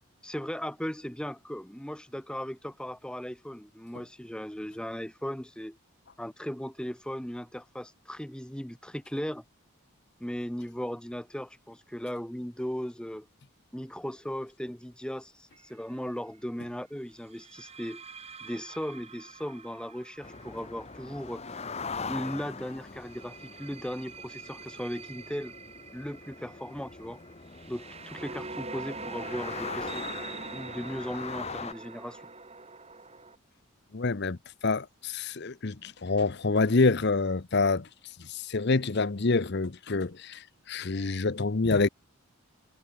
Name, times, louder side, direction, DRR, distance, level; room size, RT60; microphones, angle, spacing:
voice 1, 0.2-5.8 6.2-9.4 10.2-13.3 13.7-18.0 18.4-21.4 22.1-25.5 25.9-27.2 27.7-30.1 30.5-32.2, equal, 5° left, 0.9 m, -37 dB
sound 1, 15.5-15.8 17.3-22.1 22.9-33.4, right 4 dB, 30° right, 3.7 m, -44 dB
sound 2, 20.2-31.7, left 4 dB, 30° left, 1.1 m, -41 dB
voice 2, 33.9-34.4 34.6-37.9 38.2-41.9, left 3 dB, 50° left, 0.7 m, -27 dB
head